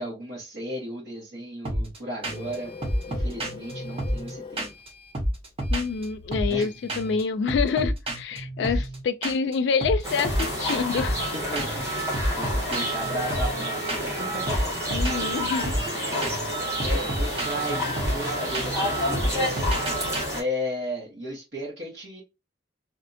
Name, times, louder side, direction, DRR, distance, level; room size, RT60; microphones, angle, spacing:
voice 1, 0.0-2.7 3.1-4.7 6.5-7.1 8.6-8.8 11.3-14.7 15.2-15.4 16.2-16.4 16.8-19.7 20.3-22.2, equal, 75° right, 1.3 m, -35 dB
sound 1, 1.7-2.0 2.2-2.6 2.8-4.9 5.1-6.6 6.9-7.2 7.5-9.5 9.8-20.2, right 1 dB, 35° right, 0.8 m, -30 dB
Printer, 2.2-7.2, left 5 dB, 30° left, 0.5 m, -43 dB
voice 2, 5.7-11.2 14.9-15.8, left 5 dB, 85° left, 0.3 m, -27 dB
sound 2, 10.0-20.4, left 1 dB, 15° right, 1.6 m, -29 dB
3.4 x 2.7 x 2.6 m
head